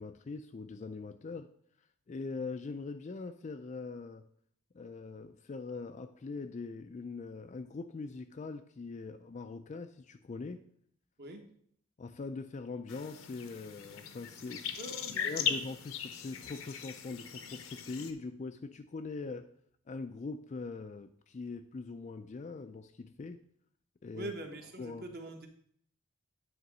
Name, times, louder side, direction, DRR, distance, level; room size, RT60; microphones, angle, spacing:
voice 1, 0.0-1.5 2.1-4.2 4.7-10.6 12.0-14.9 15.2-19.5 19.9-23.4 24.0-24.3 24.8-25.0, left 4 dB, 30° left, 8 dB, 0.3 m, -42 dB
sound 1, 12.9-18.1, left 8 dB, 65° left, 0.7 m, -39 dB
voice 2, 14.8-15.6 24.1-25.5, right 1 dB, 45° right, 4 dB, 1.2 m, -43 dB
9.3 x 4.0 x 6.0 m, 0.63 s
head